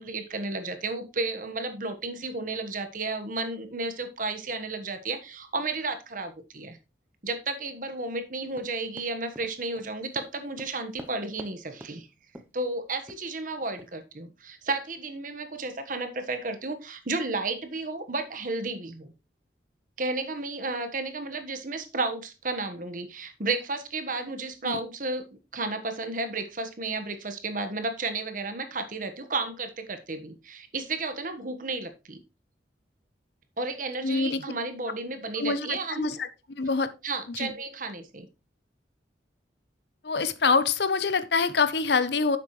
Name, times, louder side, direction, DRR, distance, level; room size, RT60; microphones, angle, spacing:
voice 1, 0.0-6.8 7.2-12.1 12.5-19.1 20.0-25.3 25.5-32.2 33.6-36.1 37.0-38.3, right 3 dB, 50° right, 1.3 m, -32 dB
Run, 8.5-11.5 11.8-12.0 12.3-12.6 13.1-13.2 13.8-13.9, right 1 dB, 10° right, 0.7 m, -45 dB
voice 2, 34.0-34.4 35.4-36.9 37.3-37.5 40.0-42.4, left 4 dB, 70° left, 0.8 m, -26 dB
9.7 x 7.4 x 3.1 m
head